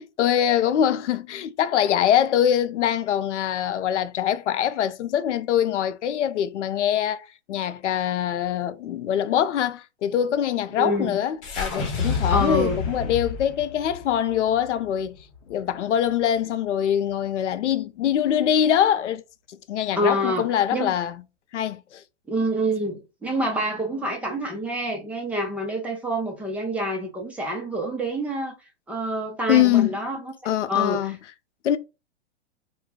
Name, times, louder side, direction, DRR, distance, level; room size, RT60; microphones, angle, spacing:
voice 1, 0.0-15.2 15.5-19.2 19.5-21.2 21.5-22.0 29.5-29.9 30.4-31.2 31.6-31.8, left 10 dB, 85° left, 0.5 m, -23 dB
voice 2, 10.8-11.2 12.3-12.8 19.9-20.9 22.3-28.6 28.9-30.3 30.7-31.2, equal, 5° right, 0.6 m, -27 dB
sound 1, 11.4-15.7, left 5 dB, 40° left, 1.0 m, -29 dB
2.3 x 2.2 x 3.5 m
hypercardioid pair, 120°, 35 cm